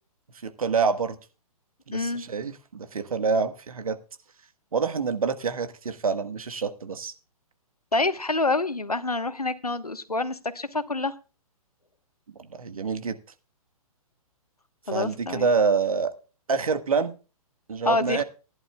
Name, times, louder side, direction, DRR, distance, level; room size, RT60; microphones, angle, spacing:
voice 1, 0.4-1.2 1.9-4.0 4.7-7.1 12.4-13.1 14.9-16.1 16.5-17.1 17.7-18.2, right 5 dB, 70° right, 10 dB, 1.6 m, -26 dB
voice 2, 1.9-2.2 7.9-11.1 14.9-15.5 17.8-18.2, left 2 dB, 90° left, 12 dB, 1.3 m, -27 dB
19.5 x 11.0 x 2.3 m, 0.34 s
figure-of-eight pair, 120°, 19 cm